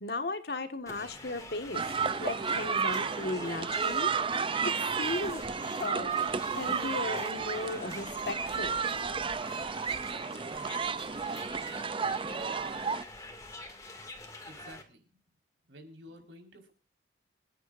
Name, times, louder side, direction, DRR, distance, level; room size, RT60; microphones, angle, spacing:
voice 1, 0.0-1.8 2.2-4.1 4.6-5.4 5.8-8.8, left 2 dB, 60° left, 8 dB, 1.8 m, -36 dB
sound 1, 0.9-14.8, left 2 dB, 20° left, 2.4 m, -47 dB
sound 2, 1.7-13.0, right 5 dB, 30° right, 0.5 m, -32 dB
voice 2, 14.5-15.2 15.7-16.8, equal, 85° right, 3 dB, 5.0 m, -51 dB
26.5 x 10.0 x 2.6 m, 0.34 s
head